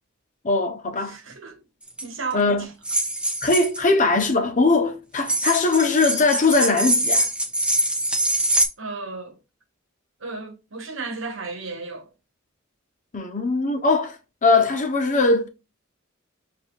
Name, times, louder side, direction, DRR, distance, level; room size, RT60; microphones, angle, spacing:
voice 1, 0.4-1.2 2.3-2.7 3.4-7.3 13.1-15.5, left 3 dB, 40° left, 0.7 m, -20 dB
voice 2, 1.0-1.6 2.0-2.7 8.8-9.4 10.2-12.1, right 4 dB, 70° right, 1.1 m, -34 dB
sound 1, 1.9-2.0 2.8-3.8 5.2-8.7, right 1 dB, 5° right, 1.0 m, -23 dB
6.9 x 2.6 x 2.3 m
head